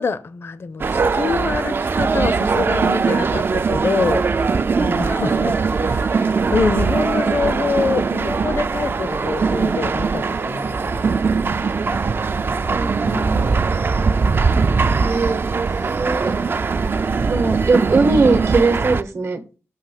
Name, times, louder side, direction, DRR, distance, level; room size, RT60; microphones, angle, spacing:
voice 1, 0.0-5.5 5.8-11.2 11.5-11.6 12.4-12.8, left 4 dB, 50° left, 0.5 m, -26 dB
sound 1, 0.8-19.0, right 4 dB, 45° right, 0.3 m, -20 dB
voice 2, 12.7-13.5 15.0-16.3 17.3-19.4, right 3 dB, 60° right, 0.9 m, -20 dB
7.2 x 2.8 x 5.6 m
wide cardioid pair, 90°, 5 cm